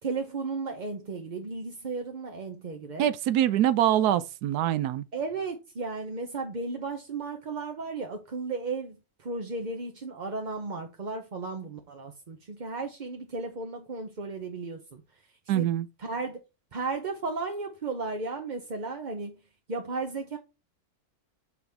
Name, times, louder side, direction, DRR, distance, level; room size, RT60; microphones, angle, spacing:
voice 1, 0.0-3.1 5.1-15.3 15.5-15.7 16.0-16.4 16.7-19.4 19.7-20.4, right 4 dB, 40° right, 0.7 m, -34 dB
voice 2, 3.0-5.0 15.5-15.9, right 11 dB, 90° right, 1.2 m, -24 dB
6.0 x 5.9 x 3.5 m
omnidirectional pair, 1.6 m